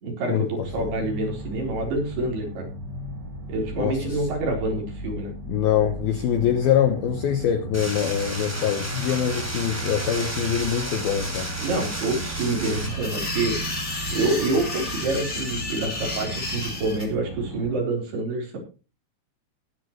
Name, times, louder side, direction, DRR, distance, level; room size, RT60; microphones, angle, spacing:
voice 1, 0.0-2.7 3.5-5.3 11.6-18.6, right 2 dB, 55° right, 0 dB, 5.7 m, -27 dB
sound 1, 0.6-17.8, right 2 dB, 70° right, 7.4 m, -36 dB
voice 2, 3.8-4.2 5.5-11.5, left 9 dB, 85° left, 8 dB, 2.1 m, -24 dB
sound 2, 7.7-12.9, right 1 dB, 5° right, 3.8 m, -33 dB
sound 3, 12.7-17.0, left 2 dB, 25° left, 1.8 m, -32 dB
19.0 x 10.5 x 3.0 m, 0.32 s
omnidirectional pair, 5.9 m